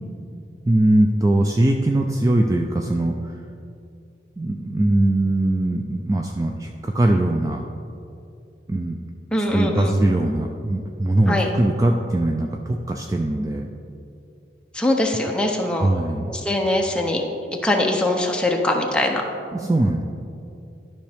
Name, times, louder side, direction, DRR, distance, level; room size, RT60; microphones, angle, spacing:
voice 1, 0.7-3.4 4.4-7.6 8.7-9.0 9.4-13.7 15.7-16.3 19.5-20.0, right 1 dB, 20° right, 2 dB, 0.3 m, -21 dB
voice 2, 9.3-10.0 11.3-11.5 14.7-15.9 16.3-17.2 17.6-19.2, left 1 dB, 5° left, 1 dB, 0.7 m, -22 dB
12.0 x 5.5 x 3.4 m, 2.6 s
head